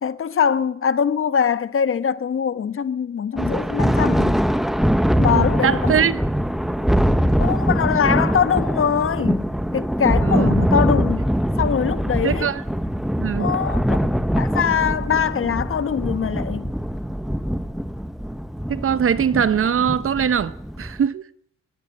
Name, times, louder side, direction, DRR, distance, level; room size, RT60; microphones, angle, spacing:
voice 1, 0.0-4.4 5.2-5.9 7.4-9.4 9.7-11.2 11.6-12.5 13.4-14.1 14.4-16.7, left 7 dB, 45° left, 1.2 m, -22 dB
Thunder, 3.4-21.0, equal, ahead, 0.9 m, -22 dB
voice 2, 5.3-6.2 10.2-10.7 12.2-12.6 13.2-13.5 18.7-21.2, right 8 dB, 45° right, 0.9 m, -22 dB
22.0 x 15.5 x 7.9 m
cardioid pair, 90°, 30 cm